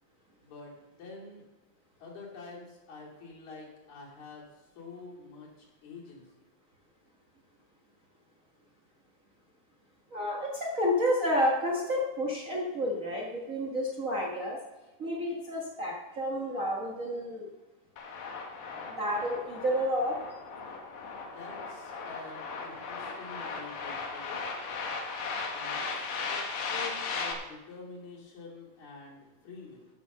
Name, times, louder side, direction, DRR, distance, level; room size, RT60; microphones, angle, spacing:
voice 1, 0.4-1.4 2.0-6.5 21.2-24.4 25.5-29.9, left 4 dB, 55° left, -3 dB, 3.9 m, -47 dB
voice 2, 10.1-14.6 15.0-17.5 18.9-20.2, equal, 65° right, -2 dB, 0.8 m, -30 dB
sound 1, 18.0-27.3, left 4 dB, 90° left, 3.3 m, -37 dB
12.0 x 7.3 x 6.7 m, 1.0 s
omnidirectional pair, 4.2 m